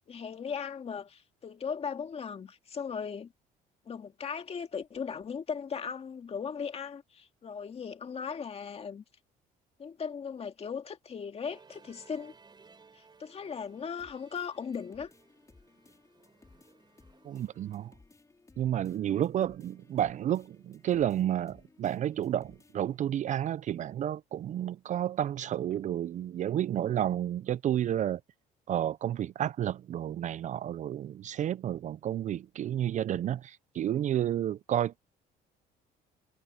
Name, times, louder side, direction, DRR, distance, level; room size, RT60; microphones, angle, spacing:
voice 1, 0.1-3.3 3.9-9.0 9.8-12.3 12.9-15.1, left 6 dB, 35° left, 2.1 m, -38 dB
Musical instrument, 11.4-17.9, right 4 dB, 25° right, 6.2 m, -60 dB
sound 1, 14.0-23.0, left 3 dB, 20° left, 5.1 m, -61 dB
voice 2, 17.2-17.9 18.6-28.2 28.7-35.0, right 11 dB, 45° right, 0.4 m, -31 dB
cardioid pair, 110°, 17 cm